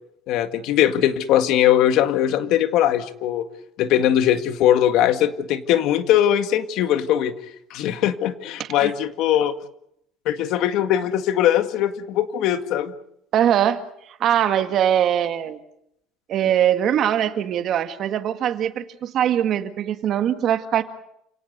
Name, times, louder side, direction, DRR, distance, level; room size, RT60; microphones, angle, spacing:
voice 1, 0.3-3.4 3.8-7.3 7.7-9.5 10.3-12.9, left 11 dB, 60° left, 10 dB, 1.9 m, -20 dB
voice 2, 8.6-8.9 13.3-13.8 14.2-15.6 16.3-20.8, right 10 dB, 45° right, 9 dB, 1.9 m, -21 dB
29.5 x 18.0 x 8.1 m, 0.76 s
cardioid pair, 155°, 0 cm